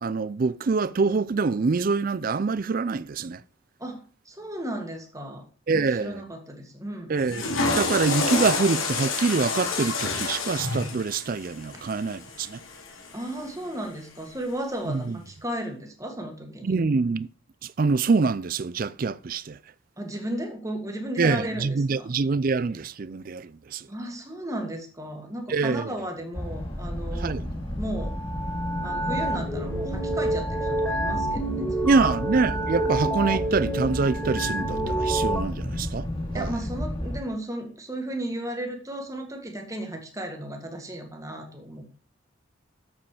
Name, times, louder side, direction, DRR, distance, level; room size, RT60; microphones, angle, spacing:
voice 1, 0.0-3.4 5.7-6.2 7.1-12.6 14.9-15.2 16.6-17.3 17.6-19.6 21.2-23.9 25.5-25.9 27.2-27.5 31.8-36.1 36.3-36.5, right 4 dB, 40° right, 0.4 m, -25 dB
voice 2, 3.8-5.4 5.7-7.2 11.7-11.8 13.1-16.8 20.0-22.1 23.9-27.4 27.8-28.1 28.8-32.1 36.3-42.0, right 1 dB, 15° right, 1.7 m, -35 dB
Water / Toilet flush, 7.1-13.4, left 3 dB, 75° left, 2.4 m, -29 dB
sound 1, 26.3-37.2, left 1 dB, 25° left, 2.2 m, -32 dB
sound 2, 28.0-35.4, right 1 dB, 5° left, 1.8 m, -29 dB
7.6 x 7.3 x 4.9 m
head